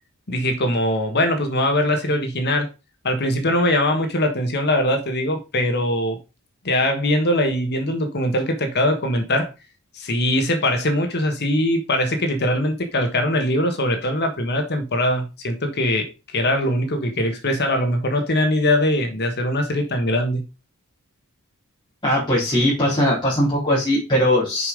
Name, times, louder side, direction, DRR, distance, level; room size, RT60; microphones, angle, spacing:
voice 1, 0.3-2.7 3.0-6.2 6.6-9.5 9.9-20.4, left 1 dB, 50° left, 1.4 m, -21 dB
voice 2, 22.0-24.7, left 1 dB, 20° left, 3.6 m, -20 dB
6.8 x 5.4 x 5.1 m
head